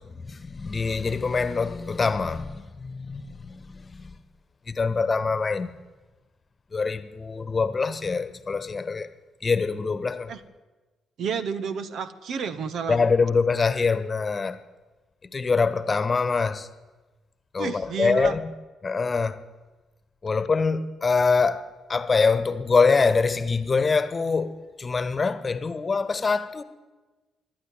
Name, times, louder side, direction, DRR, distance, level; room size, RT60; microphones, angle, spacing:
voice 1, 0.0-4.2 4.7-5.7 6.7-9.1 9.4-10.3 12.9-14.6 15.3-16.7 17.5-18.5 18.8-19.4 20.2-26.6, left 4 dB, 30° left, 1.4 m, -24 dB
voice 2, 11.2-13.0 17.6-18.4, right 6 dB, 55° right, 1.2 m, -30 dB
25.0 x 11.5 x 9.4 m
figure-of-eight pair, 40°, 0 cm